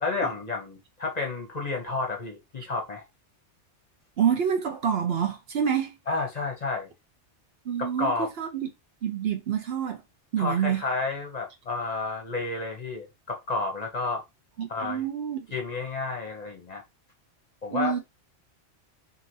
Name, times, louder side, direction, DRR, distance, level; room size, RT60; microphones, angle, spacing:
voice 1, 0.0-3.0 6.1-6.9 7.8-8.3 10.4-14.2 14.7-15.0 15.5-16.8 17.6-18.0, left 3 dB, 40° left, 0.8 m, -31 dB
voice 2, 4.2-5.9 7.7-8.7 9.0-10.0 10.3-10.8 14.6-15.5 17.7-18.0, right 8 dB, 60° right, 0.8 m, -27 dB
2.9 x 2.7 x 2.6 m
omnidirectional pair, 1.2 m